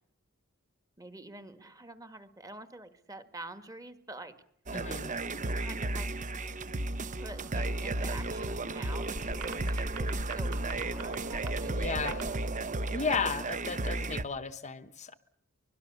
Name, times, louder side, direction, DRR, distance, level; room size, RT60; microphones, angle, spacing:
voice 1, 1.0-4.4 5.6-6.1 7.2-12.4, right 2 dB, 15° right, 10 dB, 1.8 m, -47 dB
voice 2, 4.7-5.1 11.7-12.3 12.9-15.2, left 5 dB, 30° left, 12 dB, 1.0 m, -34 dB
sound 1, 4.7-14.2, right 2 dB, 35° right, 0.9 m, -34 dB
sound 2, 7.1-12.9, right 2 dB, 80° right, 3.0 m, -45 dB
24.5 x 22.0 x 6.9 m, 0.68 s
head